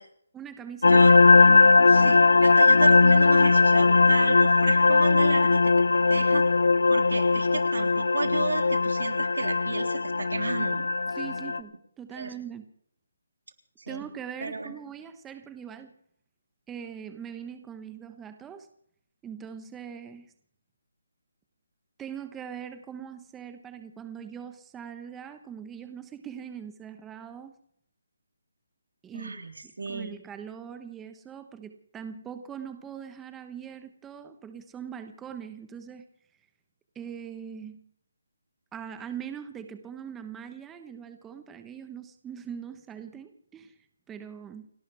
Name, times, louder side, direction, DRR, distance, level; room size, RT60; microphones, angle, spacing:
voice 1, 0.3-1.1 1.3-2.1 11.1-12.7 13.9-15.9 16.7-18.7 19.2-20.3 22.0-27.5 29.0-29.4 29.9-36.0 36.9-37.8 38.7-43.7 44.1-44.7, right 8 dB, 10° right, 9 dB, 1.2 m, -41 dB
sound 1, 0.8-11.6, left 3 dB, 85° left, 1.0 m, -19 dB
voice 2, 0.9-1.2 1.9-5.6 5.9-6.4 6.9-10.9 12.1-12.3 13.8-14.1 14.4-14.7 29.1-29.5 29.8-30.2, right 3 dB, 85° right, 4 dB, 3.6 m, -32 dB
30.0 x 12.0 x 3.5 m, 0.66 s
hypercardioid pair, 170°, 0 cm